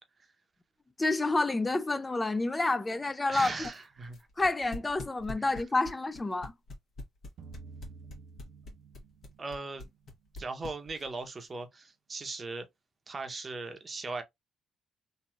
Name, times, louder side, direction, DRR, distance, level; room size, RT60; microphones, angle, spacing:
voice 1, 1.0-3.7 4.4-6.5, left 2 dB, 20° left, 0.4 m, -29 dB
sound 1, 3.3-11.2, left 2 dB, 60° left, 1.2 m, -43 dB
voice 2, 3.3-4.2 9.4-9.9 10.4-12.7 13.1-14.2, right 3 dB, 35° right, 0.7 m, -38 dB
sound 2, 7.4-9.8, right 4 dB, 75° right, 0.4 m, -50 dB
3.0 x 2.6 x 2.3 m
cardioid pair, 90°, 0 cm